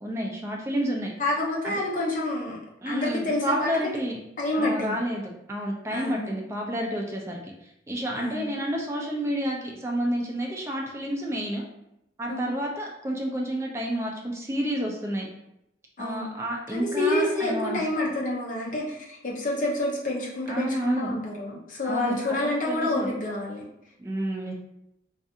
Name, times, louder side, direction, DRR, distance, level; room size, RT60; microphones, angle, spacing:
voice 1, 0.0-1.1 1.6-1.8 2.8-4.2 4.5-7.4 7.9-11.6 12.2-15.3 16.0-17.8 20.5-21.2 21.8-22.2 22.7-23.1 24.0-24.5, equal, 15° right, -1 dB, 0.3 m, -30 dB
voice 2, 1.2-2.6 2.9-3.7 4.4-5.0 5.9-6.4 8.1-8.5 12.3-12.5 16.0-16.3 16.7-23.6, left 1 dB, 45° left, -3 dB, 0.6 m, -28 dB
2.4 x 2.4 x 2.6 m, 0.83 s
head